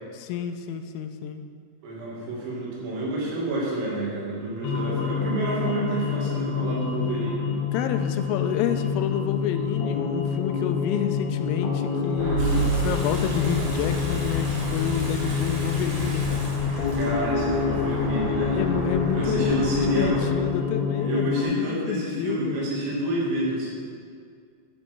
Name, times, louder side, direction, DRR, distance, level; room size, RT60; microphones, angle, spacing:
voice 1, 0.1-1.4 7.7-16.4 18.5-22.6, left 8 dB, 85° left, 8 dB, 3.2 m, -29 dB
voice 2, 1.8-7.4 17.0-18.6 19.1-20.2 21.0-23.7, right 1 dB, 80° right, -5 dB, 5.0 m, -29 dB
sound 1, 4.6-21.4, left 6 dB, 70° left, 2.6 m, -27 dB
sound 2, 12.2-20.2, right 3 dB, 65° right, 4.6 m, -31 dB
Water tap faucet / Sink (filling or washing) / Bathtub (filling or washing), 12.4-18.0, right 1 dB, 50° right, 1.8 m, -40 dB
10.5 x 9.8 x 4.5 m, 2.1 s
omnidirectional pair, 5.8 m